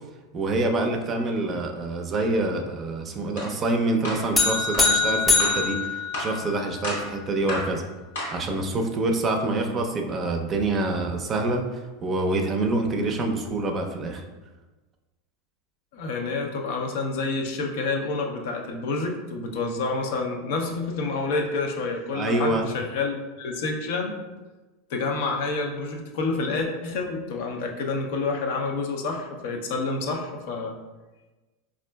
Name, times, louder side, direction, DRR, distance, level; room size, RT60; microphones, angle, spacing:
voice 1, 0.3-7.8 8.3-14.2 22.1-22.7, right 2 dB, 35° right, 3 dB, 0.5 m, -26 dB
sound 1, 3.4-3.5 4.0-4.3 4.7-4.9 5.4-5.6 6.1-6.4 6.8-7.1 7.5-7.7 8.2-8.4, left 1 dB, 85° left, 1.3 m, -32 dB
sound 2, 4.4-6.8, left 4 dB, 15° left, 0.6 m, -23 dB
voice 2, 15.9-24.2 24.9-30.7, left 3 dB, 65° left, 2 dB, 0.5 m, -28 dB
4.2 x 2.4 x 2.2 m, 1.2 s
hypercardioid pair, 95°, 0 cm